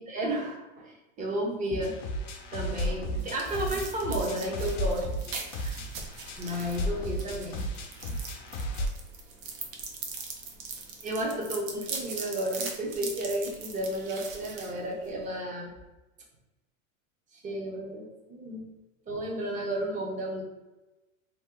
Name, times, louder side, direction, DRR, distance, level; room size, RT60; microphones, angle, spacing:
voice 1, 0.0-2.0 2.5-5.1 5.5-5.9 6.4-7.6 11.0-15.7 17.3-18.7 19.1-20.4, right 1 dB, 20° right, -1 dB, 0.6 m, -32 dB
sound 1, 1.8-8.9, equal, 60° left, 0.7 m, -34 dB
sound 2, 2.7-15.3, right 4 dB, 70° right, 0.8 m, -41 dB
2.8 x 2.1 x 3.5 m, 1.1 s
supercardioid pair, 130°, 41 cm